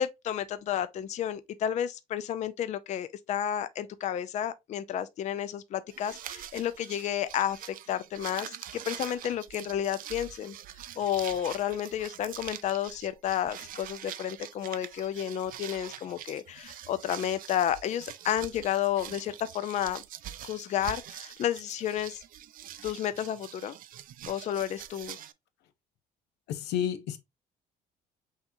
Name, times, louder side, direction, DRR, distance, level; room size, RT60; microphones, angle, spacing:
voice 1, 0.0-10.6 11.0-20.0 20.4-22.2 22.8-23.8 24.3-25.2, left 10 dB, 45° left, 0.4 m, -31 dB
sound 1, 5.9-25.3, right 11 dB, 55° right, 0.4 m, -44 dB
voice 2, 26.5-27.2, left 9 dB, 85° left, 0.7 m, -30 dB
5.6 x 2.9 x 2.6 m
cardioid pair, 110°, 17 cm